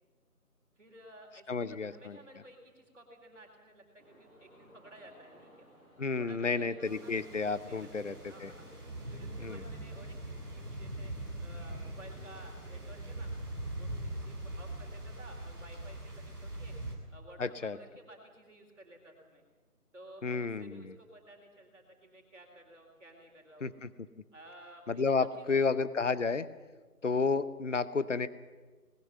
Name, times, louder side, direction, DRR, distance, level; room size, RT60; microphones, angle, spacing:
voice 1, 0.8-5.7 6.2-11.1 11.4-13.3 13.7-16.7 17.1-19.4 19.9-23.7 24.3-25.6, right 1 dB, 55° right, 2 dB, 4.0 m, -54 dB
voice 2, 1.5-2.2 6.0-8.5 9.4-9.6 17.4-17.8 20.2-20.9 23.6-23.9 24.9-26.5 27.0-28.3, left 4 dB, 55° left, 15 dB, 0.9 m, -31 dB
sound 1, 4.0-15.1, right 1 dB, 10° left, 7.1 m, -60 dB
sound 2, 6.8-17.0, right 1 dB, 15° right, 1.8 m, -42 dB
20.0 x 14.0 x 9.8 m, 1.3 s
figure-of-eight pair, 170°, 45 cm